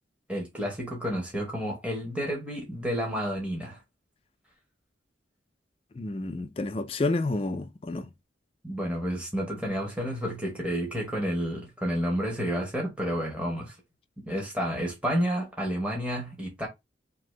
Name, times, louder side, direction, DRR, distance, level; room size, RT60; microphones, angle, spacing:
voice 1, 0.3-3.8 8.6-13.8 14.3-16.7, equal, 5° right, 0.9 m, -30 dB
voice 2, 6.0-8.1, left 2 dB, 30° left, 0.4 m, -30 dB
2.8 x 2.6 x 3.1 m
head